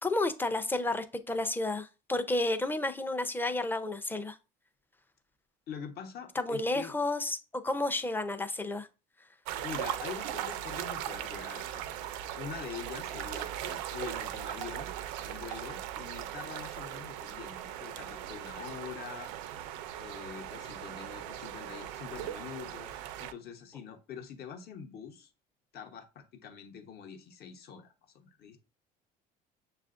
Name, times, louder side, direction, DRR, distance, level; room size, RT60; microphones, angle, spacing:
voice 1, 0.0-4.4 6.4-8.9, left 2 dB, 10° left, 0.4 m, -31 dB
voice 2, 5.7-6.9 9.6-11.8 12.4-14.9 15.2-19.3 20.0-25.3 25.7-28.6, left 7 dB, 50° left, 0.9 m, -45 dB
sound 1, 9.4-23.3, right 11 dB, 90° right, 0.4 m, -39 dB
6.7 x 2.4 x 2.4 m
supercardioid pair, 95°, 20 cm